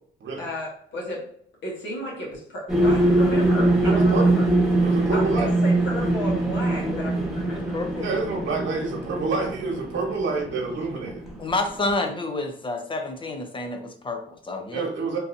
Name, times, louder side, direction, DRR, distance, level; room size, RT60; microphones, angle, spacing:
voice 1, 0.4-1.3 1.6-4.5 5.1-7.8, equal, 70° left, -3 dB, 1.4 m, -33 dB
sound 1, 2.7-11.9, right 2 dB, ahead, 1.1 m, -23 dB
voice 2, 3.8-4.2 4.8-5.5 8.0-11.2 14.7-15.2, right 4 dB, 70° right, 1 dB, 1.2 m, -27 dB
voice 3, 7.5-8.4 11.4-14.9, left 2 dB, 25° left, 5 dB, 0.7 m, -30 dB
3.8 x 2.6 x 2.6 m, 0.63 s
cardioid pair, 90°, 20 cm